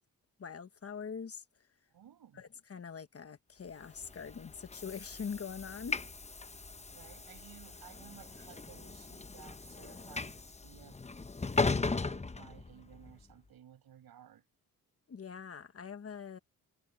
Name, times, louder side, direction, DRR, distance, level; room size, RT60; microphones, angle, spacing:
voice 1, 0.4-1.4 2.3-6.0 15.1-16.4, left 6 dB, 40° left, 1.2 m, -43 dB
voice 2, 1.9-2.4 6.9-10.4 10.6-11.0 11.4-14.4, right 10 dB, 75° right, 6.0 m, -56 dB
Train / Sliding door, 3.9-13.1, left 3 dB, 20° left, 0.9 m, -38 dB
cardioid pair, 75°, 37 cm